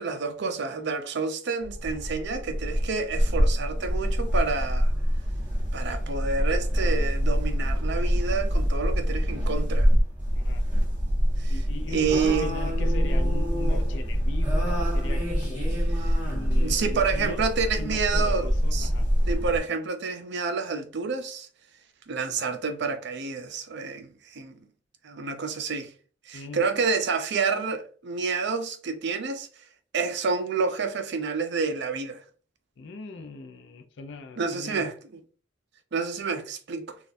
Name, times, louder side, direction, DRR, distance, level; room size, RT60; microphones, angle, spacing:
voice 1, 0.0-4.9 5.7-9.9 11.4-11.5 11.9-12.5 16.0-16.2 16.5-18.9 19.3-21.5 22.1-24.5 25.0-25.9 26.3-29.5 29.9-32.2 34.4-34.9 35.9-37.0, right 4 dB, 60° right, 0.5 m, -29 dB
sound 1, 1.6-19.6, equal, 10° right, 1.5 m, -25 dB
voice 2, 11.5-15.7 16.2-17.4 17.8-19.0 26.3-26.7 32.8-34.9, left 3 dB, 60° left, 0.5 m, -39 dB
4.0 x 2.4 x 2.6 m
head